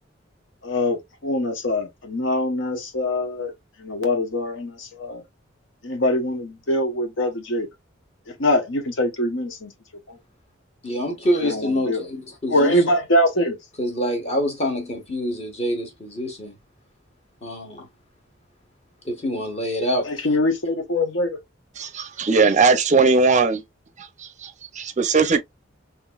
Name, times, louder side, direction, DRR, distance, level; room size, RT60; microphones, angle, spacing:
voice 1, 0.6-3.5 3.8-5.2 5.8-7.7 8.3-9.7 10.1-10.2 11.4-12.1 12.5-13.6 20.0-21.4, left 1 dB, 70° left, 0.9 m, -23 dB
voice 2, 10.8-12.8 13.8-16.5 17.4-17.9 19.0-20.1, equal, 35° left, 1.5 m, -26 dB
voice 3, 21.8-23.6 24.0-25.4, right 4 dB, 40° right, 0.5 m, -19 dB
3.9 x 2.9 x 2.3 m
head